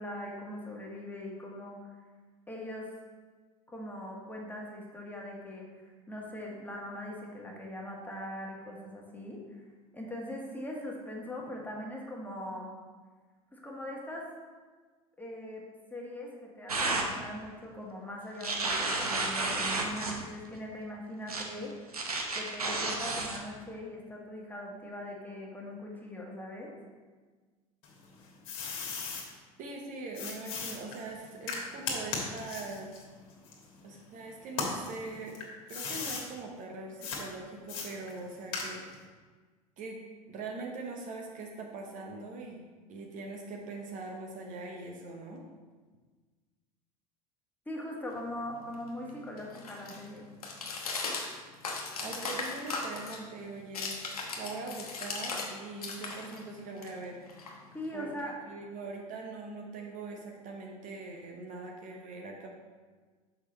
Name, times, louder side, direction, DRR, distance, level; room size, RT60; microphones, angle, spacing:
voice 1, 0.0-1.8 2.5-2.9 3.7-9.4 9.9-12.7 13.5-14.3 15.2-15.6 15.9-21.7 22.3-26.7 47.6-50.3 57.7-58.4, left 1 dB, 10° left, -2 dB, 1.5 m, -41 dB
sound 1, 16.7-17.1 18.4-20.2 21.3-21.4 21.9-23.4, right 3 dB, 90° right, 0.7 m, -31 dB
sound 2, 27.8-29.3 30.1-34.1 34.5-36.3 37.0-37.2 37.7-39.0, left 4 dB, 65° left, 1.5 m, -37 dB
voice 2, 29.6-33.0 33.8-35.4 35.7-38.8 39.8-40.0 40.3-42.6 42.9-45.4 52.0-54.0 54.4-57.2 57.9-62.5, right 3 dB, 45° right, 1 dB, 0.9 m, -42 dB
sound 3, 48.1-55.5 55.8-58.0, left 3 dB, 80° left, 1.0 m, -39 dB
6.3 x 5.1 x 4.1 m, 1.4 s
figure-of-eight pair, 75°, 19 cm